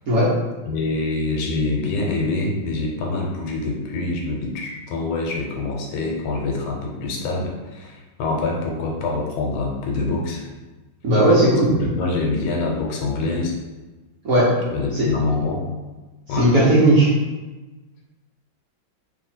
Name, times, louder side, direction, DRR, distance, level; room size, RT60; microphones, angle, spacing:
voice 1, 0.7-10.5 11.7-13.5 14.7-15.6 16.3-16.5, left 3 dB, 80° left, 0 dB, 1.5 m, -25 dB
voice 2, 11.0-11.7 14.2-14.6 14.9-15.1 16.3-17.1, right 1 dB, 60° right, -7 dB, 1.0 m, -16 dB
3.1 x 2.8 x 4.1 m, 1.2 s
omnidirectional pair, 2.3 m